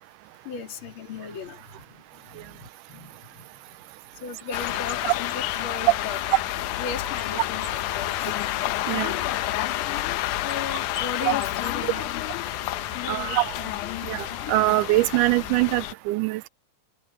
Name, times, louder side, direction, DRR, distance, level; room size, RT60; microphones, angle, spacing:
voice 1, 0.4-3.8 4.2-6.2 6.8-8.3 10.4-12.2 12.9-13.4 13.8-14.0, left 6 dB, 45° left, 3.0 m, -37 dB
sound 1, 4.5-15.9, left 15 dB, 90° left, 2.2 m, -29 dB
voice 2, 13.1-13.6 14.0-16.5, right 20 dB, 90° right, 2.1 m, -23 dB
open air
omnidirectional pair, 3.5 m